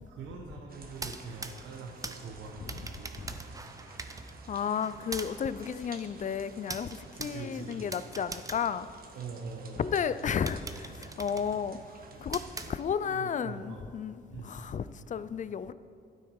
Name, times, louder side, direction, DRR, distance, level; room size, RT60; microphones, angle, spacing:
voice 1, 0.1-3.5 7.2-7.8 9.1-9.9 13.0-13.8 14.3-14.6, right 5 dB, 75° right, 1.2 m, -43 dB
sound 1, 0.7-12.7, right 3 dB, 45° right, 1.4 m, -52 dB
sound 2, 0.9-9.6 10.0-10.1 10.5-13.2, right 3 dB, 15° right, 0.7 m, -43 dB
voice 2, 4.5-6.9 7.2-8.9 9.8-11.8 12.2-12.4 12.7-15.7, left 7 dB, 40° left, 0.4 m, -33 dB
12.0 x 9.4 x 4.7 m
cardioid pair, 90°, 20 cm